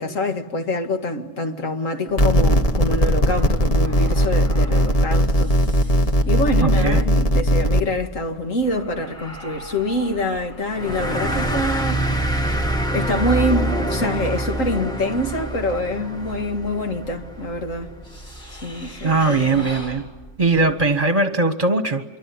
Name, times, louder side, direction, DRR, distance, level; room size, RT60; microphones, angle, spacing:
voice 1, 0.0-5.6 6.3-12.0 12.9-17.9 18.5-19.7 20.6-20.7, left 1 dB, 85° left, 2.4 m, -25 dB
sound 1, 2.1-20.9, right 1 dB, 55° left, 8.1 m, -41 dB
sound 2, 2.2-7.8, equal, 30° left, 1.2 m, -18 dB
voice 2, 6.6-7.0 19.0-20.1 20.4-22.0, right 3 dB, 30° right, 1.2 m, -20 dB
sound 3, 10.7-17.8, right 1 dB, 5° left, 1.3 m, -25 dB
26.0 x 24.0 x 9.5 m
omnidirectional pair, 1.3 m